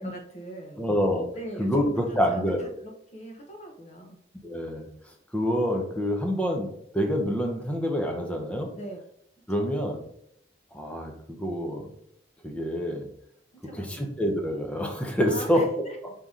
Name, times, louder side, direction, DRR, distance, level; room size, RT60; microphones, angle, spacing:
voice 1, 0.0-0.9 1.3-4.2 8.7-9.0 9.6-9.7 13.5-14.1 15.3-16.0, right 1 dB, 35° left, 2 dB, 0.8 m, -41 dB
voice 2, 0.8-1.3 1.6-2.6 4.4-4.9 5.3-8.7 9.5-10.0 10.7-11.9 12.4-13.1 13.7-16.1, equal, 5° left, 2 dB, 0.6 m, -27 dB
5.0 x 2.8 x 3.6 m, 0.73 s
head